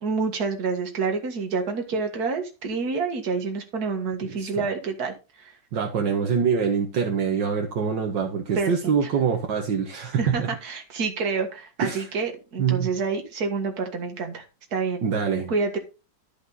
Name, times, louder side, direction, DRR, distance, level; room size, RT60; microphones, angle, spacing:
voice 1, 0.0-5.5 8.6-9.1 10.2-14.5 14.7-15.0 15.5-15.8, right 4 dB, 55° right, 4 dB, 2.1 m, -28 dB
voice 2, 4.2-4.7 5.7-10.5 11.8-12.1 12.6-12.9 15.0-15.5, right 6 dB, 70° right, 3 dB, 1.9 m, -25 dB
12.0 x 5.1 x 4.0 m, 0.30 s
omnidirectional pair, 2.0 m